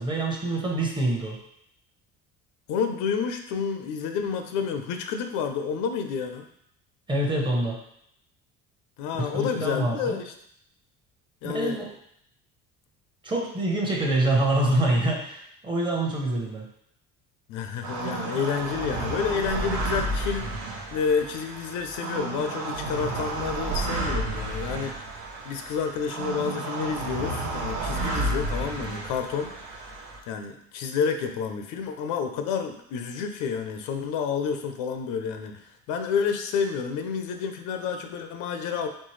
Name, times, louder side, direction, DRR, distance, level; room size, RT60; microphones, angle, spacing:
voice 1, 0.0-1.4 7.1-7.8 9.2-10.2 11.4-11.9 13.2-16.7, right 1 dB, 15° right, 0 dB, 0.8 m, -26 dB
voice 2, 2.7-6.5 9.0-10.3 11.4-11.8 17.5-20.6 20.9-25.2 25.4-29.5 30.3-38.9, left 6 dB, 85° left, 6 dB, 0.7 m, -29 dB
sound 1, 17.8-30.2, right 2 dB, 70° right, 0.8 m, -31 dB
4.4 x 3.6 x 3.2 m, 0.71 s
cardioid pair, 145°, 30 cm